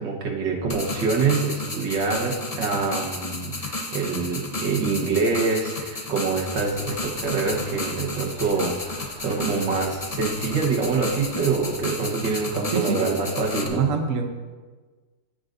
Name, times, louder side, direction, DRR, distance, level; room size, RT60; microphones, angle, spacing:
voice 1, 0.0-13.9, right 4 dB, 75° right, 0 dB, 1.9 m, -25 dB
sound 1, 0.7-13.7, left 2 dB, 40° left, 0.5 m, -33 dB
sound 2, 6.3-11.7, left 3 dB, 80° left, 1.8 m, -46 dB
voice 2, 13.7-14.3, right 5 dB, 55° right, 4 dB, 1.0 m, -25 dB
15.5 x 6.4 x 2.6 m, 1.4 s
omnidirectional pair, 2.0 m